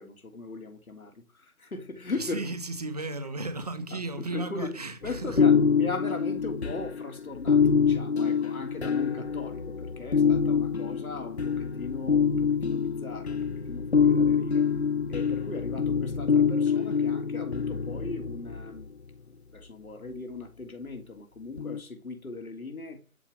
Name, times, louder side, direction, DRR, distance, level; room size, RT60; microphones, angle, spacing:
voice 1, 0.0-2.4 3.9-4.7 5.0-14.7 15.1-18.9 19.3-23.0, left 3 dB, 75° left, 3.3 m, -38 dB
voice 2, 2.1-5.4, right 2 dB, 25° right, 1.6 m, -35 dB
sound 1, 5.0-18.8 21.6-21.8, left 6 dB, 50° left, 0.8 m, -25 dB
13.0 x 5.1 x 9.0 m
figure-of-eight pair, 175°, 43 cm